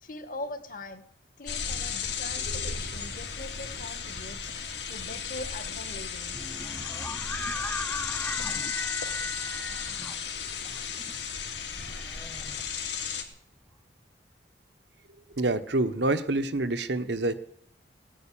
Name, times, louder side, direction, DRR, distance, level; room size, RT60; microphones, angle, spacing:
voice 1, 0.0-1.0 1.4-4.5 4.8-6.4, left 2 dB, 50° left, 10 dB, 1.6 m, -41 dB
sound 1, 1.5-13.2, left 6 dB, 70° left, 2.4 m, -34 dB
sound 2, 6.3-13.2, left 1 dB, 10° left, 0.6 m, -38 dB
voice 2, 15.3-17.3, right 2 dB, 70° right, 10 dB, 1.2 m, -27 dB
17.5 x 9.2 x 8.8 m, 0.68 s
head